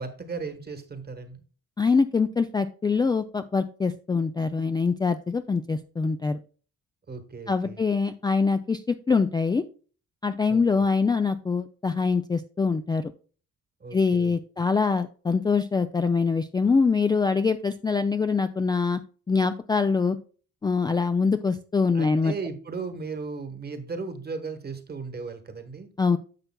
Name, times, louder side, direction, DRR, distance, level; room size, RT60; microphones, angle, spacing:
voice 1, 0.0-1.4 7.1-7.8 10.5-10.6 13.8-14.3 21.9-25.9, right 4 dB, 30° right, 9 dB, 1.2 m, -36 dB
voice 2, 1.8-6.4 7.5-9.6 10.2-13.1 13.9-19.0 19.3-20.2 20.6-22.3 26.0-26.2, left 4 dB, 15° left, 9 dB, 0.3 m, -24 dB
10.5 x 6.5 x 2.2 m, 0.40 s
cardioid pair, 90°, 30 cm